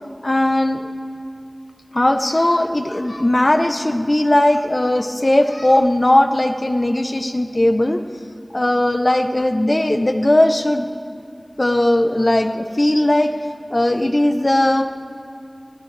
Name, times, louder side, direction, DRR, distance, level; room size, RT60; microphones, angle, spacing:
voice 1, 0.2-0.8 1.9-8.0 8.5-10.9 11.6-13.3 13.7-14.8, left 1 dB, 50° left, 6 dB, 0.9 m, -18 dB
22.0 x 16.5 x 3.4 m, 2.4 s
wide cardioid pair, 40°, 0 cm